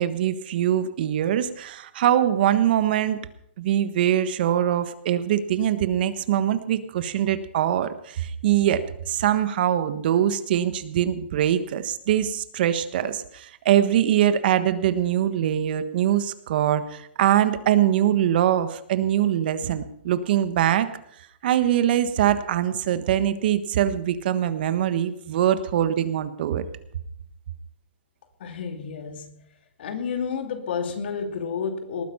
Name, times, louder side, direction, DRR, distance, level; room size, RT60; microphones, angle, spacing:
voice 1, 0.0-3.2 3.6-20.9 21.4-26.7, right 11 dB, 60° right, 11 dB, 1.3 m, -23 dB
voice 2, 28.4-29.4 29.8-32.1, left 6 dB, 70° left, 5 dB, 2.7 m, -30 dB
19.5 x 9.4 x 5.7 m, 0.70 s
hypercardioid pair, 150°, 6 cm